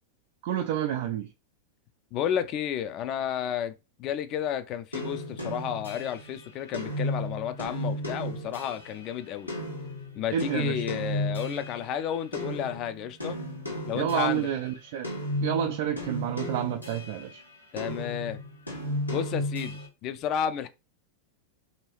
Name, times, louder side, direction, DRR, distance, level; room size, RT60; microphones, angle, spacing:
voice 1, 0.4-1.3 10.3-10.8 13.9-15.1 15.4-17.4, right 10 dB, 50° right, 0.4 m, -29 dB
voice 2, 2.1-3.7 4.0-9.5 10.2-13.4 13.9-14.5 17.7-18.4 19.1-20.7, left 9 dB, 35° left, 0.4 m, -32 dB
sound 1, 4.9-12.1 12.3-14.6 15.0-17.3 17.8-19.9, left 1 dB, 85° left, 1.2 m, -34 dB
3.0 x 2.8 x 3.1 m
figure-of-eight pair, 90°, 0 cm